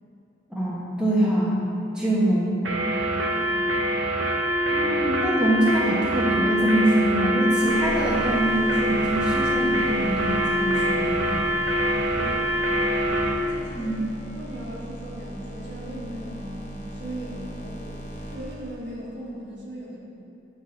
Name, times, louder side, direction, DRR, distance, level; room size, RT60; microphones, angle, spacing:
voice 1, 0.5-1.7 1.9-2.6 4.7-11.3 13.7-14.0, right 1 dB, 5° right, -7 dB, 1.2 m, -24 dB
sound 1, 2.6-13.4, equal, 90° right, 0.9 m, -24 dB
voice 2, 3.3-3.7 12.1-12.7 13.4-14.0 14.2-18.0 18.3-20.1, equal, 70° right, -6 dB, 2.0 m, -38 dB
sound 2, 7.6-19.3, equal, 40° left, 1.0 m, -39 dB
9.1 x 4.0 x 6.2 m, 2.6 s
head